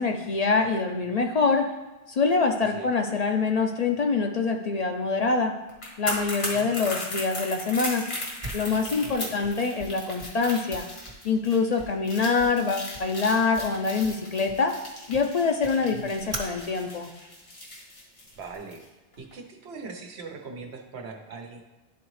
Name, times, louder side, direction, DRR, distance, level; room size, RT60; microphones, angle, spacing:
voice 1, 0.0-1.7 2.1-5.5 6.0-8.0 8.5-10.9 11.2-14.8 15.1-17.1, left 4 dB, 50° left, 3 dB, 0.5 m, -25 dB
voice 2, 2.6-2.9 6.5-6.7 9.0-9.4 15.9-16.1 18.4-18.9 19.2-21.6, right 4 dB, 90° right, 3 dB, 1.2 m, -41 dB
sound 1, 5.7-18.8 19.1-19.3, left 1 dB, 75° left, 1.7 m, -37 dB
Fire, 6.0-18.5, right 2 dB, 50° right, 1.3 m, -44 dB
11.0 x 3.9 x 3.1 m, 1.1 s
omnidirectional pair, 1.0 m